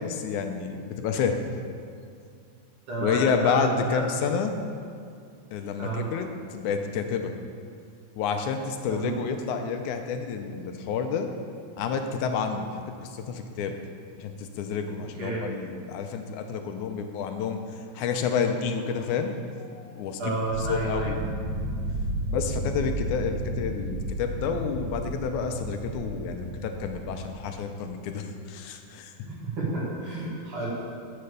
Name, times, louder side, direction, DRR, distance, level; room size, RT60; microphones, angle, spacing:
voice 1, 0.0-1.4 3.0-4.6 5.5-7.3 8.2-11.3 11.8-12.7 13.0-13.8 14.2-17.6 18.0-20.4 20.7-21.2 22.3-29.1, left 6 dB, 85° left, 6 dB, 2.2 m, -29 dB
voice 2, 2.9-4.0 5.8-6.1 8.9-9.2 15.2-15.5 20.2-21.1 29.2-30.7, right 2 dB, 50° right, -6 dB, 3.1 m, -31 dB
sound 1, 20.5-27.3, right 1 dB, 75° right, 3.5 m, -32 dB
9.9 x 6.8 x 6.8 m, 2.3 s
omnidirectional pair, 3.5 m